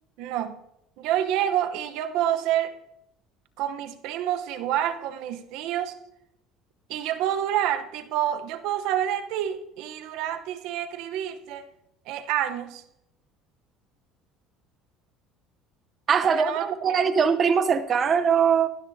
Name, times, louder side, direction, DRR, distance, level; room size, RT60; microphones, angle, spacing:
voice 1, 0.2-0.6 1.0-2.8 3.6-6.0 6.9-11.6 12.1-12.8 16.2-16.7, right 11 dB, 75° right, 9 dB, 0.9 m, -28 dB
voice 2, 16.1-18.7, right 6 dB, 40° right, 9 dB, 0.7 m, -21 dB
18.5 x 13.5 x 2.8 m, 0.84 s
supercardioid pair, 100°, 0 cm